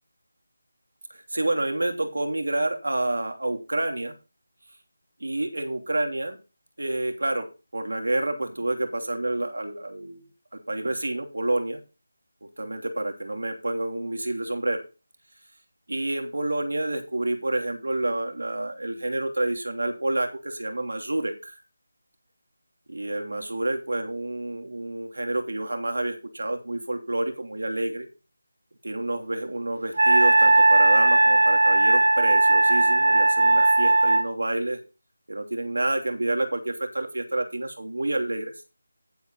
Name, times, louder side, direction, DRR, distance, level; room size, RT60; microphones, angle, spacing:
voice 1, 1.1-4.1 5.2-6.4 6.8-7.5 7.7-11.8 12.4-14.8 15.9-21.5 22.9-28.1 28.8-34.8 35.3-38.5, right 2 dB, 90° right, 4 dB, 2.9 m, -29 dB
Wind instrument woodwind instrument, 30.0-34.2, right 2 dB, 65° right, 1.2 m, -18 dB
11.0 x 8.1 x 4.0 m, 0.31 s
figure-of-eight pair, 175°, 0 cm